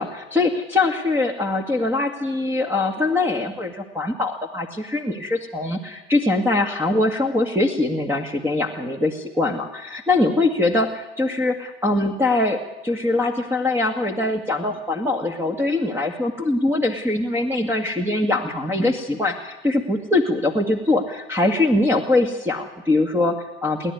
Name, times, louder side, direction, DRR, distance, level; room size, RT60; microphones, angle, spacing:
voice 1, 0.0-23.9, left 2 dB, 5° right, 4 dB, 2.1 m, -22 dB
30.0 x 11.0 x 9.6 m, 1.0 s
figure-of-eight pair, 75°, 34 cm